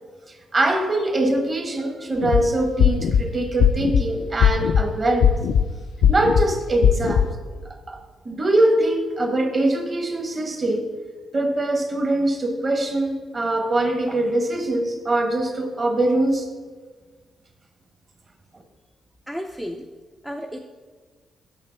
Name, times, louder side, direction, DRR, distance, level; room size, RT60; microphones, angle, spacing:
voice 1, 0.5-5.3 6.1-7.4 7.9-8.0 8.2-10.8 11.3-16.5, right 1 dB, 30° right, 4 dB, 1.5 m, -22 dB
sound 1, 2.2-2.4 2.8-3.2 3.6-4.0 4.4-4.8 5.2-5.6 6.0-6.4 6.8-7.3, left 8 dB, 85° left, 0.4 m, -17 dB
voice 2, 19.3-19.9 20.2-20.6, equal, 5° right, 3 dB, 0.5 m, -32 dB
8.8 x 6.6 x 5.9 m, 1.5 s
cardioid pair, 135°, 0 cm